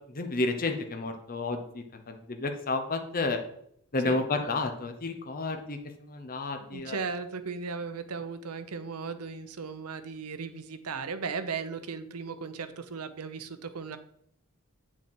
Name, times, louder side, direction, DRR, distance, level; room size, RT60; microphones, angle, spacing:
voice 1, 0.1-3.4 3.9-5.8 6.1-7.0, left 3 dB, 40° left, 5 dB, 0.9 m, -31 dB
voice 2, 6.6-14.0, right 5 dB, 80° right, 10 dB, 0.8 m, -36 dB
8.0 x 6.2 x 4.4 m, 0.70 s
head